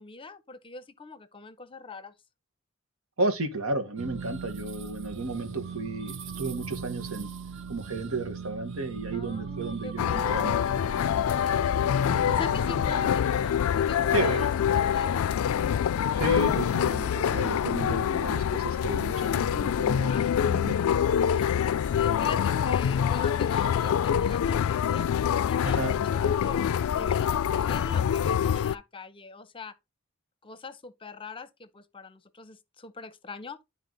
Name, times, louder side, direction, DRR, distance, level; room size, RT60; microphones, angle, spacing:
voice 1, 0.0-2.1 9.1-10.7 12.3-15.7 20.0-20.3 21.3-25.1 25.5-29.7 30.4-33.6, left 3 dB, 25° left, 0.7 m, -43 dB
voice 2, 3.2-7.3 7.7-11.3 14.1-14.5 16.1-20.8 25.6-26.0, right 2 dB, 85° right, 1.5 m, -33 dB
sound 1, 4.0-14.1, right 6 dB, 60° right, 0.7 m, -40 dB
sound 2, 10.0-28.7, left 8 dB, 85° left, 0.3 m, -25 dB
11.0 x 4.0 x 3.9 m
head